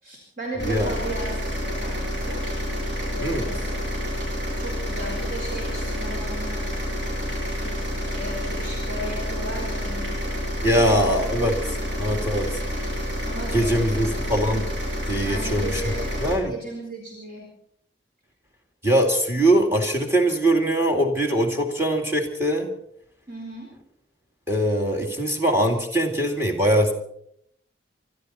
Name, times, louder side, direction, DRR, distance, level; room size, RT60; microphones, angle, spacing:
voice 1, 0.0-2.5 3.1-3.8 4.6-6.8 7.6-10.1 10.7-11.1 11.5-11.8 12.3-12.5 13.3-14.3 15.2-17.5 23.3-23.7, right 1 dB, 50° right, -2 dB, 4.3 m, -36 dB
voice 2, 0.6-0.9 3.2-3.5 10.6-12.6 13.5-14.7 15.1-16.6 18.8-22.7 24.5-26.9, right 1 dB, 15° right, 2 dB, 2.5 m, -22 dB
sound 1, 0.6-16.4, equal, 75° right, 7.2 m, -28 dB
26.0 x 13.0 x 4.3 m, 0.70 s
head